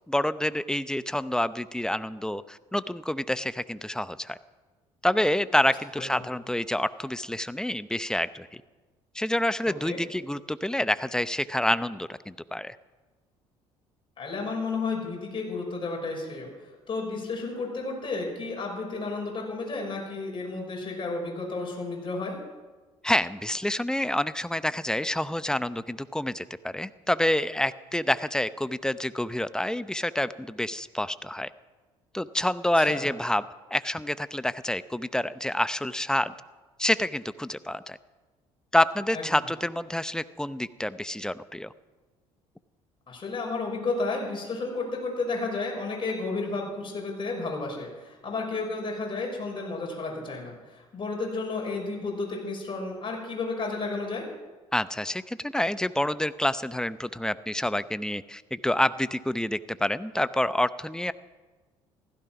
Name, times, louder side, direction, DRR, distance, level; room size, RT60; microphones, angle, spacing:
voice 1, 0.1-4.4 5.0-8.6 9.1-12.8 23.0-31.5 32.1-33.5 33.7-36.3 36.8-38.0 38.7-41.7 54.7-61.1, left 1 dB, 5° left, 14 dB, 0.8 m, -28 dB
voice 2, 9.7-10.0 14.2-16.5 16.9-22.4 32.7-33.1 39.1-39.2 43.1-54.3, left 3 dB, 35° left, -1 dB, 6.1 m, -32 dB
16.0 x 14.5 x 6.0 m, 1.3 s
hypercardioid pair, 60°, 15 cm